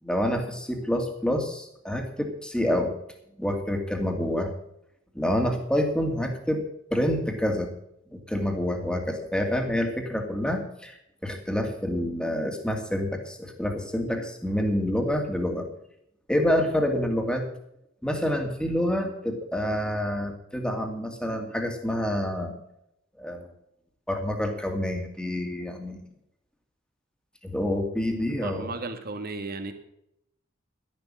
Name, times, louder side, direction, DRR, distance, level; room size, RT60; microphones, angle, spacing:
voice 1, 0.0-2.9 3.4-4.5 5.1-6.6 6.9-7.7 8.1-11.0 11.2-15.7 16.3-17.5 18.0-22.6 23.2-23.5 24.1-26.0 27.4-28.7, left 1 dB, 5° left, 3 dB, 2.4 m, -27 dB
voice 2, 28.3-29.7, right 3 dB, 50° right, 7 dB, 1.8 m, -34 dB
12.0 x 11.0 x 6.2 m, 0.77 s
head